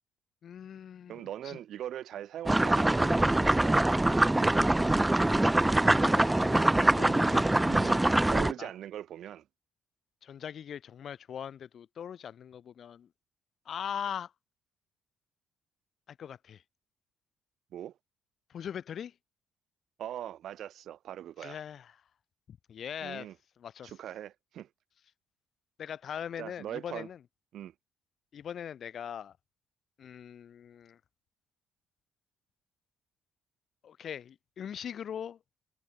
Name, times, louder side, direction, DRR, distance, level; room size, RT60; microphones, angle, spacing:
voice 1, 0.4-1.6 5.8-8.1 8.6-8.7 10.2-13.1 13.7-14.3 16.1-16.6 18.5-19.1 21.4-22.0 22.5-23.3 23.6-23.9 25.8-27.2 28.3-29.4 30.0-31.0 33.8-35.4, left 8 dB, 45° left, 3.5 m, -41 dB
voice 2, 1.1-4.0 4.4-4.7 7.7-9.4 17.7-17.9 20.0-21.6 23.0-23.3 23.8-24.7 26.4-27.1 27.5-27.7, right 11 dB, 55° right, 2.6 m, -41 dB
sound 1, 2.5-8.5, right 1 dB, 10° right, 0.6 m, -24 dB
cardioid pair, 155°, 0 cm